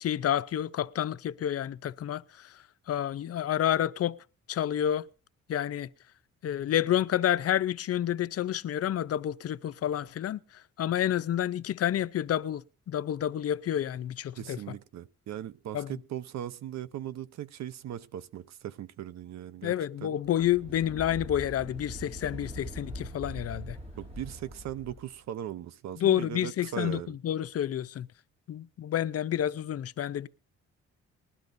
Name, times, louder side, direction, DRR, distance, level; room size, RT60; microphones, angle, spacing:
voice 1, 0.0-4.2 4.5-5.1 5.5-5.9 6.4-14.6 15.7-15.9 19.6-23.8 26.0-28.1 28.5-30.3, left 11 dB, 55° left, 0.6 m, -29 dB
voice 2, 14.4-19.7 20.0-20.1 24.0-27.1, right 11 dB, 65° right, 0.7 m, -39 dB
sound 1, 20.2-25.1, right 1 dB, 20° right, 2.7 m, -42 dB
20.5 x 12.0 x 2.6 m
cardioid pair, 90°, 30 cm